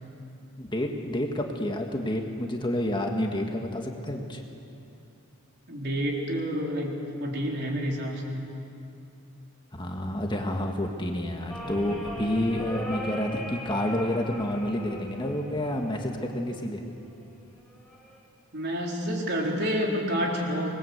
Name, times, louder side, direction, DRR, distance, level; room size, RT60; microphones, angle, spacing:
voice 1, 0.6-4.4 9.7-16.8, left 1 dB, 20° left, 2 dB, 1.7 m, -29 dB
voice 2, 5.7-7.0 7.2-8.5 18.5-20.7, equal, 50° right, -1 dB, 3.9 m, -29 dB
sound 1, 11.5-16.5 17.7-18.2, equal, ahead, 6.4 m, -38 dB
26.0 x 20.5 x 8.0 m, 2.7 s
head